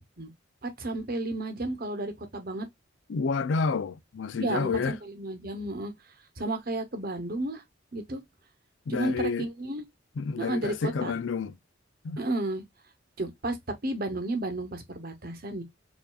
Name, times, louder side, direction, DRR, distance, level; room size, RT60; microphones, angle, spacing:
voice 1, 0.6-2.7 4.4-5.9 6.4-7.6 7.9-8.2 8.9-9.8 10.4-10.7 11.0-11.1 12.2-12.6 13.2-13.6 13.8-15.6, right 2 dB, 50° right, 1.0 m, -32 dB
voice 2, 3.1-4.9 8.9-9.5 10.2-11.6 12.0-12.2, left 5 dB, 70° left, 0.4 m, -29 dB
4.6 x 2.7 x 2.3 m
head